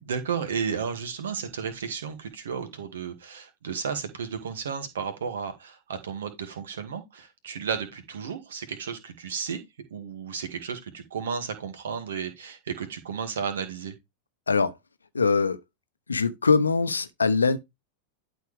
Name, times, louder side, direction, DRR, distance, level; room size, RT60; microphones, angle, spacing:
voice 1, 0.0-9.6 9.9-13.9, right 6 dB, 65° right, 2.2 m, -33 dB
voice 2, 15.1-15.6 16.1-17.6, left 4 dB, 75° left, 1.0 m, -22 dB
11.5 x 4.5 x 3.5 m
figure-of-eight pair, 90°, 0 cm